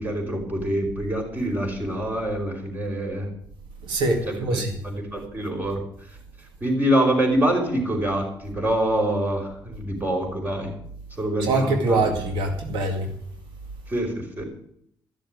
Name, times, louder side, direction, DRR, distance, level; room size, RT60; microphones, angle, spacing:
voice 1, 0.0-3.3 4.2-5.8 6.6-10.7 11.2-12.1 13.9-14.4, right 1 dB, 25° right, 5.0 m, -25 dB
voice 2, 3.8-4.7 11.4-13.1, right 2 dB, 90° right, 2.1 m, -23 dB
14.0 x 7.0 x 9.6 m
cardioid pair, 95°, 8 cm